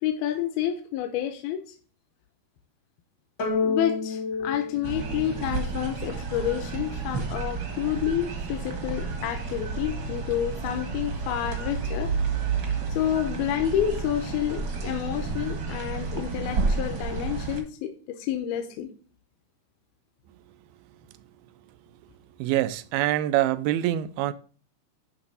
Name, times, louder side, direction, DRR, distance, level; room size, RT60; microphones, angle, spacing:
voice 1, 0.0-1.6 3.6-12.1 12.9-18.9, left 10 dB, 80° left, 2.6 m, -29 dB
sound 1, 3.4-6.0, left 4 dB, 60° left, 1.1 m, -30 dB
sound 2, 4.8-17.6, right 4 dB, 60° right, 1.2 m, -31 dB
voice 2, 22.4-24.3, right 13 dB, 85° right, 2.4 m, -25 dB
10.5 x 3.5 x 5.4 m
omnidirectional pair, 4.3 m